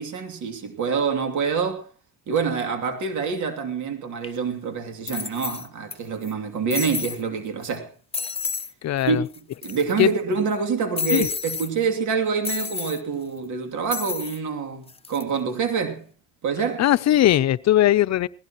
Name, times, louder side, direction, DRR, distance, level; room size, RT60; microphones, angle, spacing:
voice 1, 0.0-1.9 2.3-7.9 9.1-9.2 9.6-16.1 16.4-16.8, right 5 dB, 75° right, 2.9 m, -26 dB
sound 1, 4.2-4.3 5.1-5.9 6.2-6.3 6.7-7.2 7.6-7.8 8.1-8.7 9.0-9.1 9.3-10.1 11.0-11.7 12.4-13.0 13.9-14.4 14.9-15.2, left 6 dB, 20° left, 1.0 m, -30 dB
voice 2, 8.8-9.2 10.0-10.1 11.1-11.3 16.8-18.3, left 13 dB, 60° left, 0.6 m, -19 dB
19.5 x 17.0 x 3.0 m
cardioid pair, 90°, 30 cm